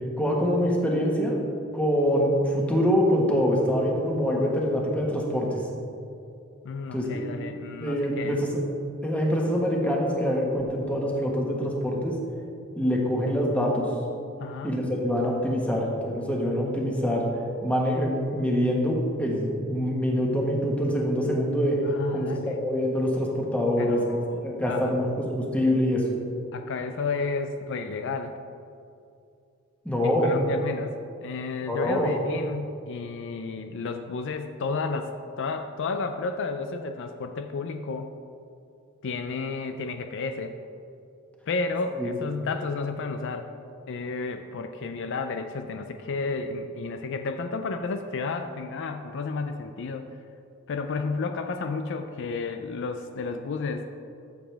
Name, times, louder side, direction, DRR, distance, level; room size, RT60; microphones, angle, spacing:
voice 1, 0.2-1.4 1.7-5.5 6.9-7.2 7.8-8.5 9.0-12.1 12.7-13.8 14.6-17.3 17.6-21.8 22.1-24.0 24.4-25.1 25.3-26.0 29.8-30.3 31.7-32.1 42.0-42.1, equal, 5° left, -2 dB, 1.5 m, -25 dB
voice 2, 6.6-8.4 14.4-14.7 21.8-22.6 23.8-24.4 24.7-24.9 26.5-28.3 30.0-30.9 31.2-35.1 35.4-38.1 39.0-40.5 41.5-43.5 43.9-50.1 50.7-53.9, left 4 dB, 60° left, 6 dB, 0.5 m, -32 dB
14.0 x 7.2 x 3.5 m, 2.5 s
head